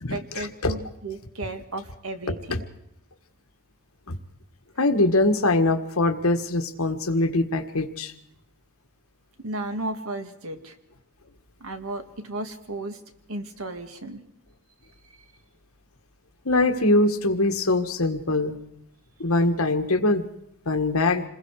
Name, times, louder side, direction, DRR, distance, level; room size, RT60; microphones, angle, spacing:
voice 1, 0.1-2.7 9.4-10.8 11.6-13.0 13.3-14.2, right 2 dB, 70° right, 7 dB, 2.0 m, -34 dB
voice 2, 4.8-8.1 16.4-18.5 19.2-20.2 20.7-21.2, left 2 dB, 70° left, 7 dB, 1.6 m, -22 dB
27.5 x 21.0 x 4.9 m, 0.83 s
head